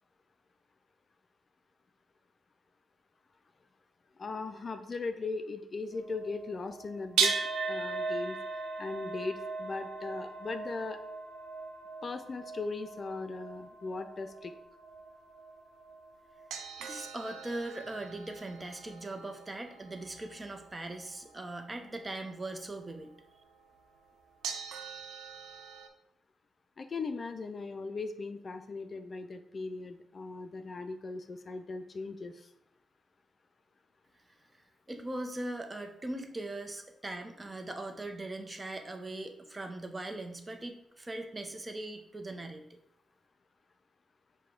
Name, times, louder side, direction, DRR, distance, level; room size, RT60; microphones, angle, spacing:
voice 1, 4.2-8.4 8.8-11.0 12.0-14.5 26.8-32.5, left 3 dB, 50° left, 8 dB, 0.3 m, -38 dB
sound 1, 5.9-22.1 23.0-23.1 24.4-25.9, right 5 dB, 85° right, 0.4 m, -39 dB
voice 2, 16.8-23.1 34.9-42.8, right 2 dB, 25° right, 5 dB, 0.6 m, -40 dB
4.7 x 2.2 x 3.7 m, 0.77 s
supercardioid pair, 50°, 0 cm